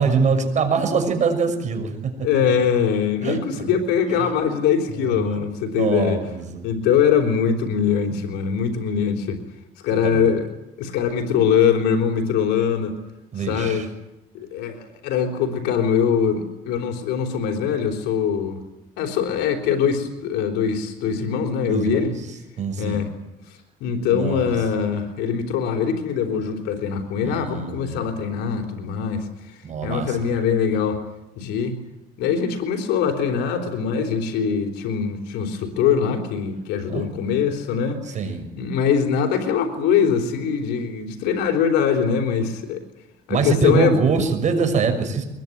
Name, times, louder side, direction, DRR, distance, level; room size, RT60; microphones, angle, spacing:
voice 1, 0.0-2.1 3.2-3.4 4.9-6.6 10.0-10.3 13.3-13.9 21.7-22.2 22.6-23.0 24.1-24.5 27.2-28.0 29.6-30.2 36.9-37.1 38.0-38.5 43.3-45.2, right 5 dB, 45° right, 6 dB, 6.2 m, -23 dB
voice 2, 2.2-6.2 6.6-9.4 9.8-10.5 10.8-13.0 13.4-13.9 14.3-18.6 19.0-22.1 22.8-23.1 23.5-29.3 29.8-31.0 31.4-31.8 32.2-38.0 38.6-42.8 43.3-44.0, left 7 dB, 90° left, 4 dB, 3.8 m, -22 dB
23.5 x 21.5 x 9.4 m, 0.93 s
cardioid pair, 110°, 17 cm